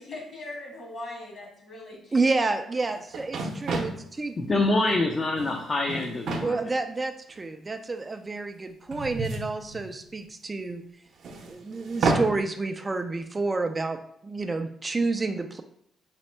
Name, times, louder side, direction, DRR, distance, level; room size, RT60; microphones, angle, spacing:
voice 1, 0.0-2.3, left 2 dB, 50° left, -1 dB, 1.6 m, -40 dB
voice 2, 2.1-4.4 6.4-10.8 11.5-15.6, right 3 dB, 25° right, 7 dB, 0.3 m, -29 dB
sound 1, 2.8-2.9 3.1-4.0 5.1-5.5 5.9-6.5 7.4-7.5 8.9-10.2 11.2-12.3, right 3 dB, 65° right, 0.6 m, -30 dB
voice 3, 4.4-6.6, left 2 dB, 35° left, 1 dB, 0.5 m, -25 dB
4.3 x 2.1 x 4.3 m, 0.69 s
cardioid pair, 90°, 0 cm